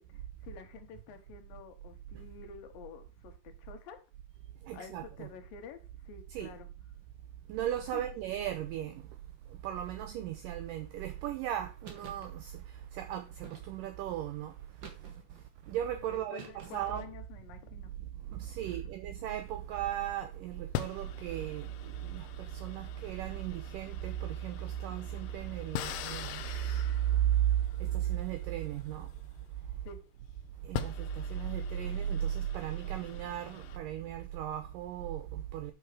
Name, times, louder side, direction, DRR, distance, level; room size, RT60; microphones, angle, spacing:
voice 1, 0.0-4.0 4.7-5.8 6.0-6.7 7.9-8.0 16.1-17.9 18.7-18.8 29.8-30.0, left 6 dB, 70° left, 2.5 m, -49 dB
voice 2, 4.6-5.3 6.3-6.5 7.5-9.0 9.5-14.6 15.7-17.1 18.3-26.9 27.1-29.1 30.6-35.7, right 11 dB, 85° right, 1.9 m, -35 dB
sound 1, 11.8-12.3 13.4-14.0 14.8-15.4 16.4-17.0, right 5 dB, 55° right, 1.2 m, -49 dB
sound 2, 19.3-20.0 20.7-29.9 30.4-30.5 30.7-33.8, left 11 dB, 90° left, 2.7 m, -44 dB
7.7 x 6.2 x 4.9 m
omnidirectional pair, 4.5 m